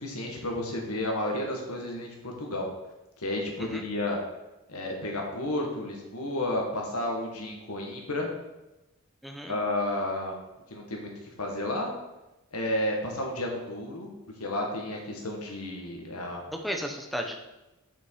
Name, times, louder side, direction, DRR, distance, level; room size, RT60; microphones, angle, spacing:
voice 1, 0.0-2.7 3.2-4.2 4.7-8.3 9.5-10.4 10.7-11.1 11.4-11.9 12.5-14.1 14.4-16.5, left 1 dB, 85° left, 0 dB, 1.7 m, -32 dB
voice 2, 9.2-9.6 16.5-17.4, equal, ahead, 3 dB, 0.7 m, -34 dB
6.3 x 5.4 x 4.8 m, 0.98 s
head